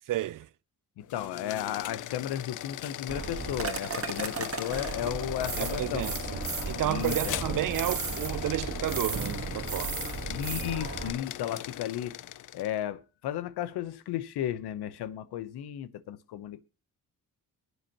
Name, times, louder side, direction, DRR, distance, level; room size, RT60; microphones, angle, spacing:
voice 1, 0.1-0.5 5.6-10.1, right 13 dB, 60° right, 0.5 m, -32 dB
voice 2, 1.0-6.1 6.8-7.6 10.3-12.2 12.5-16.6, left 11 dB, 85° left, 0.9 m, -34 dB
sound 1, 1.0-12.8, left 12 dB, 55° left, 0.5 m, -39 dB
sound 2, 3.1-11.1, right 5 dB, 35° right, 1.5 m, -35 dB
23.0 x 8.2 x 2.9 m
cardioid pair, 70°, 38 cm